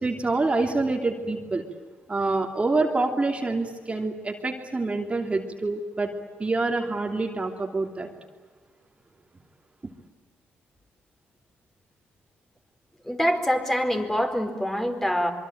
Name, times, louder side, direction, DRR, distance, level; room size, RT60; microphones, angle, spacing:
voice 1, 0.0-1.6 2.1-6.1 6.4-8.1, right 3 dB, 25° right, 3 dB, 3.0 m, -26 dB
voice 2, 13.0-15.3, equal, 10° left, 5 dB, 4.6 m, -25 dB
25.5 x 23.5 x 9.0 m, 1.5 s
cardioid pair, 75°, 4 cm